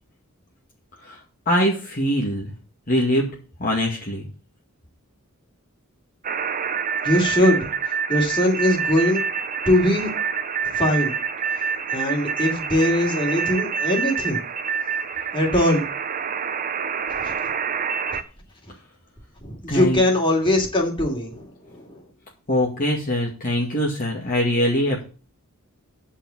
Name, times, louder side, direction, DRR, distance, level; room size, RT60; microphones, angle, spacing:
voice 1, 1.5-2.5 2.9-3.3 3.6-4.3 19.7-20.0 22.5-25.0, equal, 40° left, -3 dB, 2.2 m, -22 dB
sound 1, 6.2-18.2, right 6 dB, 40° right, 0.7 m, -27 dB
voice 2, 7.0-7.7 8.1-9.2 9.7-10.1 10.7-11.1 11.9-14.4 15.3-15.8 17.2-17.3 19.4-22.0, left 1 dB, 25° left, 0 dB, 3.0 m, -21 dB
10.0 x 5.7 x 7.3 m, 0.38 s
head